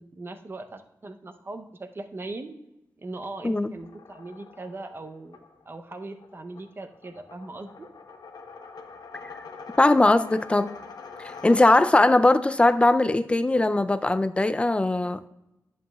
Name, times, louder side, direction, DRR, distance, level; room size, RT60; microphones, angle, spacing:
voice 1, 0.0-2.6 3.0-5.4 5.7-7.9, right 2 dB, 35° right, 0.6 m, -39 dB
sound 1, 3.8-12.1, left 4 dB, 70° left, 0.8 m, -45 dB
voice 2, 9.8-10.8 11.4-15.3, left 2 dB, 15° left, 0.3 m, -20 dB
11.0 x 7.3 x 2.3 m
wide cardioid pair, 130°, 7 cm